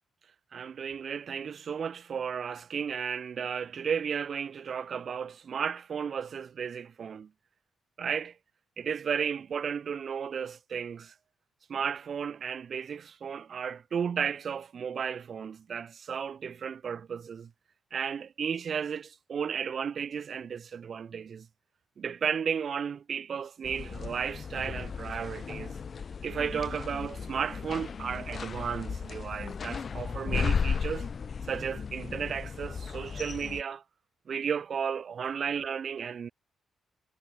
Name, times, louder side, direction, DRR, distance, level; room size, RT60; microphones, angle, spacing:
voice 1, 0.5-7.3 8.0-8.3 8.8-11.1 11.7-17.5 17.9-21.5 22.0-25.7 26.2-31.1 31.5-33.8 34.3-36.3, right 7 dB, 50° right, 0.9 m, -34 dB
sound 1, 23.6-33.6, left 6 dB, 40° left, 1.5 m, -35 dB
cardioid pair, 115°, 0 cm